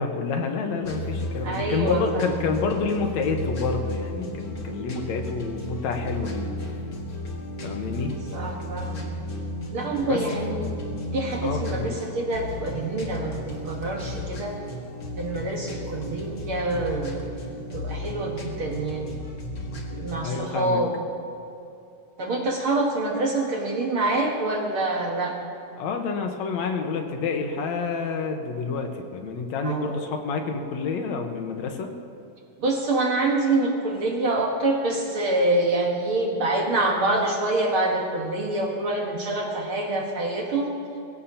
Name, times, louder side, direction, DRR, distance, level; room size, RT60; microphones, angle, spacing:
voice 1, 0.0-6.5 7.6-8.1 10.0-10.2 11.4-12.0 20.2-20.8 25.8-31.9, left 4 dB, 65° left, 4 dB, 2.2 m, -28 dB
sound 1, 0.8-20.2, left 1 dB, 35° left, 1.6 m, -34 dB
voice 2, 1.4-2.5 8.3-9.1 9.7-10.7 11.1-14.6 15.2-17.3 17.7-19.2 19.9-20.9 22.2-25.4 29.6-30.0 32.6-40.7, right 2 dB, 50° right, -1 dB, 1.9 m, -26 dB
22.5 x 16.5 x 2.9 m, 2.8 s
omnidirectional pair, 3.8 m